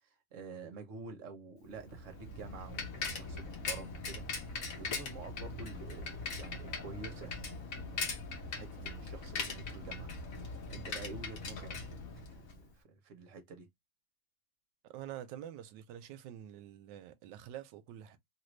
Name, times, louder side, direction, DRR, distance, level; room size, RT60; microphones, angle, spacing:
voice 1, 0.0-7.4 7.7-10.1 10.4-13.7, right 4 dB, 50° right, 1.0 m, -49 dB
Bicycle, 1.8-12.6, left 4 dB, 55° left, 1.2 m, -41 dB
voice 2, 14.8-18.2, right 11 dB, 80° right, 1.2 m, -47 dB
3.1 x 2.5 x 3.1 m
omnidirectional pair, 2.0 m